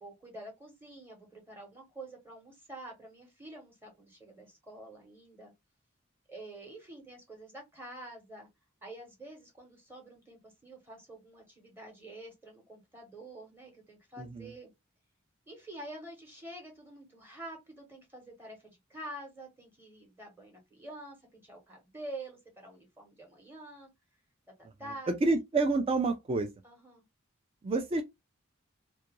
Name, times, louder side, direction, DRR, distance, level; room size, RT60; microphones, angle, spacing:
voice 1, 0.0-5.5 6.3-8.5 8.8-14.7 15.5-23.9 24.6-25.4 26.6-27.0, right 1 dB, 10° right, 0.8 m, -47 dB
voice 2, 14.2-14.5 25.1-26.5 27.6-28.0, right 3 dB, 30° right, 0.3 m, -28 dB
2.3 x 2.1 x 2.9 m
head